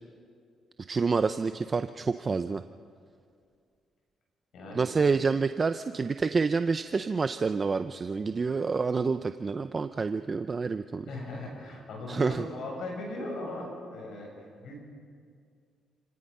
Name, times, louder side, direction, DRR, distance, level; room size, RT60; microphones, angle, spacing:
voice 1, 0.9-2.6 4.7-11.1 12.1-12.4, right 4 dB, 35° right, 10 dB, 0.5 m, -28 dB
voice 2, 4.5-5.1 11.1-14.8, left 1 dB, 70° left, 0 dB, 7.4 m, -38 dB
29.0 x 18.0 x 5.5 m, 2.2 s
cardioid pair, 90°, 0 cm